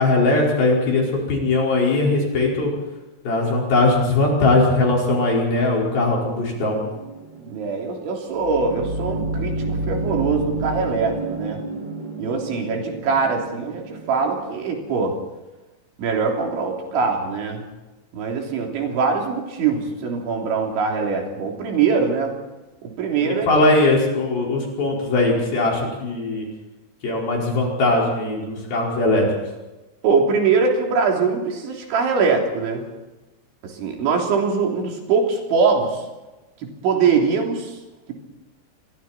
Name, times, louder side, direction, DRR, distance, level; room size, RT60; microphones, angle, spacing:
voice 1, 0.0-2.7 3.2-6.8 23.2-26.5 27.0-29.3, left 2 dB, 55° left, -2 dB, 6.6 m, -20 dB
sound 1, 6.5-15.1, right 2 dB, 30° right, 2.6 m, -31 dB
voice 2, 7.4-9.5 9.9-11.6 12.2-15.1 16.0-17.6 18.1-22.4 22.8-23.5 30.0-32.8 33.6-36.0 36.6-37.8, right 5 dB, 80° right, 1 dB, 5.7 m, -22 dB
27.0 x 23.0 x 4.4 m, 1.1 s
omnidirectional pair, 5.3 m